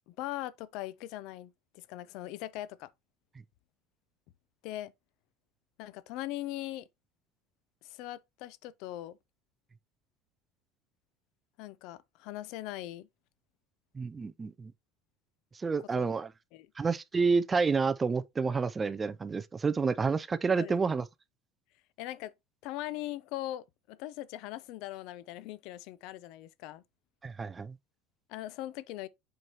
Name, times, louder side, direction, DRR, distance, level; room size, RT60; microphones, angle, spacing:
voice 1, 0.1-2.9 4.6-4.9 5.8-6.9 7.8-9.2 11.6-13.1 15.9-16.1 16.5-16.7 20.6-20.8 22.0-22.3 22.6-26.8 28.3-29.1, left 15 dB, 65° left, 0.5 m, -40 dB
voice 2, 14.0-14.7 15.6-16.3 16.8-21.0 27.2-27.7, right 4 dB, 20° right, 0.4 m, -29 dB
7.8 x 4.6 x 2.9 m
supercardioid pair, 135°, 0 cm